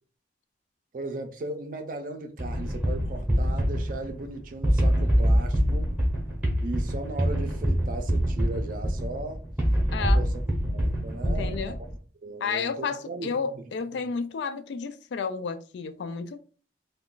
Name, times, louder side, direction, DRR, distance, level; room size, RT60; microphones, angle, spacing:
voice 1, 0.9-5.9 6.6-9.4 10.0-10.3 10.7-11.8 12.2-13.6 13.9-14.1, right 2 dB, 45° right, 0.4 m, -37 dB
sound 1, 2.4-11.9, equal, 10° right, 0.7 m, -25 dB
voice 2, 11.2-11.8 12.4-16.4, left 5 dB, 70° left, 0.3 m, -31 dB
2.3 x 2.2 x 3.7 m
head